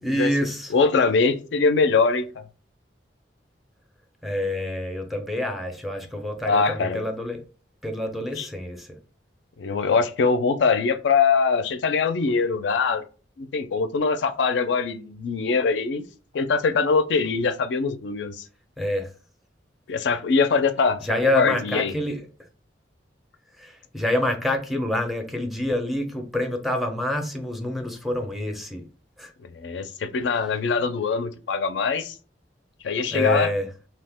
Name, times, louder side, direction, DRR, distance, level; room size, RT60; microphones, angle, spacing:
voice 1, 0.0-0.7 4.2-7.4 7.8-9.0 18.8-19.1 21.0-22.2 23.6-28.9 29.2-29.3 33.1-33.7, left 1 dB, ahead, 0.4 m, -27 dB
voice 2, 0.7-2.4 6.5-7.0 8.4-8.5 9.6-13.0 13.4-16.0 16.3-18.4 19.9-21.0 21.3-21.9 29.5-32.2 32.8-33.5, left 4 dB, 70° left, 0.4 m, -22 dB
2.8 x 2.1 x 3.3 m
head